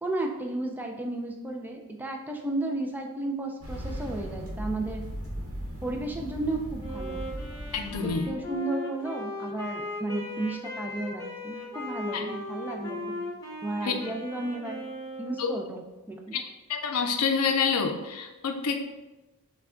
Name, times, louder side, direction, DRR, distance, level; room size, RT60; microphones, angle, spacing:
voice 1, 0.0-5.0 5.8-7.2 8.0-13.2 13.6-14.8 15.2-16.4, right 2 dB, 10° right, 1 dB, 0.4 m, -33 dB
sound 1, 3.6-8.5, equal, 65° right, 1.0 m, -38 dB
Wind instrument woodwind instrument, 6.8-15.6, left 1 dB, 15° left, 1.1 m, -37 dB
voice 2, 7.7-8.3 12.1-12.2 13.8-14.0 15.4-15.5 16.3-16.4 16.7-18.8, left 5 dB, 80° left, 5 dB, 0.5 m, -27 dB
5.8 x 2.3 x 3.7 m, 1.0 s
head